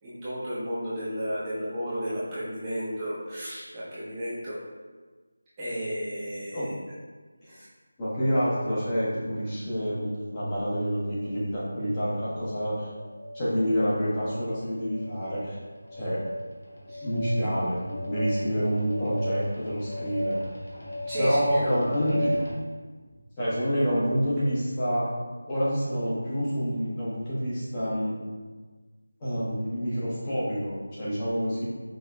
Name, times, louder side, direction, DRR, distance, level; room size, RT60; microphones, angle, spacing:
voice 1, 0.0-4.6 5.6-6.7 7.4-7.6 16.9-17.1 21.1-22.1, equal, 15° right, -12 dB, 0.8 m, -33 dB
voice 2, 8.0-12.9 13.3-15.6 15.9-16.2 17.0-20.4 21.2-22.3 23.4-25.1 25.5-28.1 29.2-31.6, equal, 20° left, -10 dB, 1.1 m, -27 dB
sound 1, 11.0-11.3 12.0-12.3 12.9-13.3 13.9-14.4 14.9-15.3 15.9-22.5, equal, 55° left, 1.1 m, -35 dB
5.4 x 2.9 x 2.3 m, 1.4 s
figure-of-eight pair, 170°, 0 cm